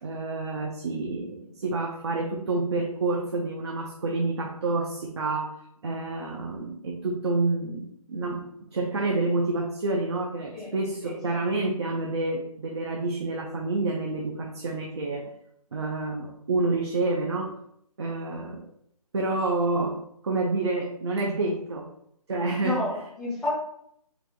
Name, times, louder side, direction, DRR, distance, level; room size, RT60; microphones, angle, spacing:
voice 1, 0.0-5.5 5.8-15.3 15.7-17.5 18.0-18.7 19.1-21.9 22.3-22.8, right 2 dB, 45° right, 0 dB, 0.6 m, -28 dB
voice 2, 11.0-11.6 18.2-18.4 22.6-23.6, left 2 dB, ahead, -11 dB, 0.6 m, -31 dB
3.9 x 2.4 x 4.4 m, 0.72 s
hypercardioid pair, 165°, 20 cm